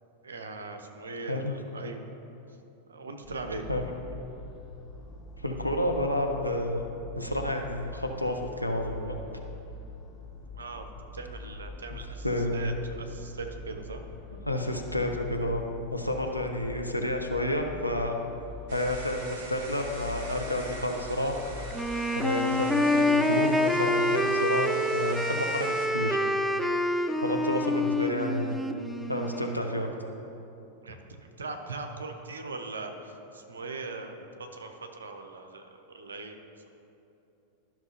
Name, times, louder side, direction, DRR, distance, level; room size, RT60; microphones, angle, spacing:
voice 1, 0.2-2.0 2.9-3.7 10.6-10.9 11.1-12.3 12.5-14.0 30.8-31.0 31.4-36.4, right 3 dB, 70° right, 5 dB, 0.7 m, -40 dB
sound 1, 3.2-22.0, left 2 dB, 25° left, 0.9 m, -44 dB
voice 2, 5.4-6.8 7.1-9.1 11.9-12.0 12.2-12.7 14.4-15.6 15.9-18.2 18.7-21.4 22.1-26.2 27.2-28.6 29.1-29.9, left 1 dB, 90° left, 2 dB, 0.6 m, -30 dB
sound 2, 18.7-25.9, right 2 dB, 45° right, 1.4 m, -44 dB
Wind instrument woodwind instrument, 21.7-29.6, left 1 dB, ahead, 0.4 m, -27 dB
12.0 x 5.9 x 2.7 m, 2.8 s
figure-of-eight pair, 90°, 0 cm